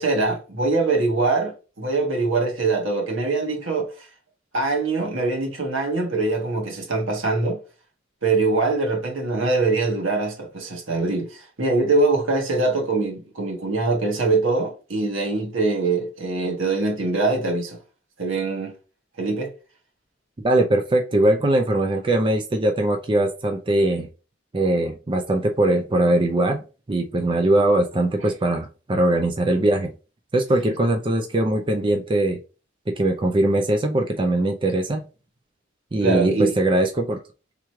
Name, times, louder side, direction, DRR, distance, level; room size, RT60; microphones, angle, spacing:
voice 1, 0.0-3.9 4.5-7.6 8.2-17.8 18.2-18.7 19.2-19.5 36.0-36.5, right 3 dB, 80° right, 1.5 m, -23 dB
voice 2, 20.4-24.1 24.5-26.6 26.9-29.9 30.3-32.4 32.9-35.0 35.9-37.2, right 1 dB, 25° right, 0.5 m, -21 dB
3.6 x 3.1 x 4.5 m
head